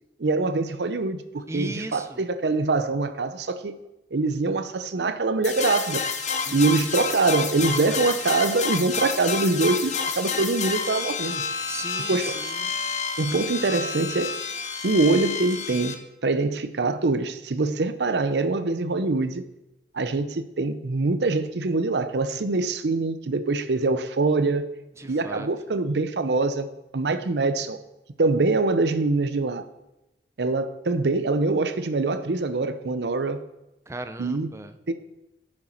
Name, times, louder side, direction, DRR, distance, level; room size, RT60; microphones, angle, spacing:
voice 1, 0.2-3.8 4.1-6.0 6.5-11.5 12.1-12.4 13.2-14.4 14.8-19.4 19.9-24.7 25.0-27.8 28.2-29.7 30.4-33.4 34.2-34.5 34.9-35.0, right 3 dB, 70° right, 0.6 m, -24 dB
voice 2, 1.5-2.2 6.5-6.9 11.7-12.7 25.0-25.5 33.9-34.7, right 2 dB, 15° right, 0.6 m, -37 dB
sound 1, 5.4-15.9, left 5 dB, 45° left, 0.8 m, -29 dB
11.0 x 6.5 x 4.4 m
head